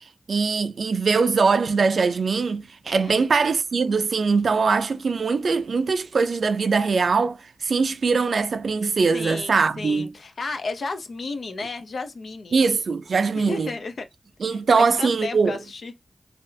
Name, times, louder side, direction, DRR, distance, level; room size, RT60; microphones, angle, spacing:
voice 1, 0.3-10.1 12.5-13.7 14.4-15.6, right 4 dB, 80° right, 0.4 m, -22 dB
voice 2, 2.9-3.3 9.1-12.5 13.3-14.1 14.7-15.9, left 3 dB, 80° left, 0.7 m, -33 dB
3.3 x 2.5 x 2.7 m
cardioid pair, 55°, 0 cm